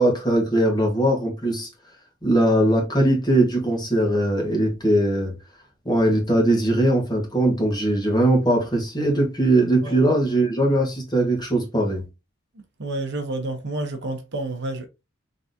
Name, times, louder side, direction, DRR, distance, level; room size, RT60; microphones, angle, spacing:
voice 1, 0.0-1.7 2.2-5.3 5.8-12.0, right 1 dB, 20° left, 1.5 m, -20 dB
voice 2, 12.8-14.9, right 2 dB, 60° right, 0.9 m, -29 dB
3.9 x 3.5 x 2.7 m
head